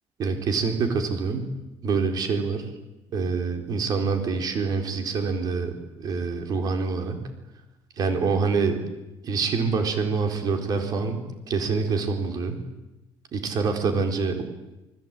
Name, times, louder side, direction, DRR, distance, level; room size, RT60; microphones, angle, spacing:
voice 1, 0.2-1.5 1.8-2.6 3.1-7.3 8.0-8.8 9.2-12.6 13.3-14.4, right 4 dB, 40° right, 5 dB, 4.3 m, -26 dB
28.5 x 21.0 x 9.1 m, 0.99 s
cardioid pair, 175°, 10 cm